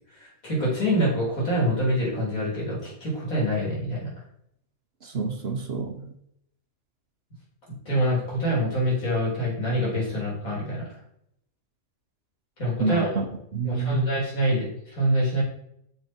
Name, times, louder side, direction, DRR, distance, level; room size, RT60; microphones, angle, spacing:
voice 1, 0.2-4.1 7.9-10.9 12.6-13.2 13.6-15.4, equal, 75° left, -5 dB, 4.0 m, -25 dB
voice 2, 5.0-6.1 12.8-13.3 13.5-14.1, right 4 dB, 50° right, 5 dB, 1.1 m, -28 dB
7.2 x 6.7 x 4.4 m, 0.74 s
omnidirectional pair, 1.5 m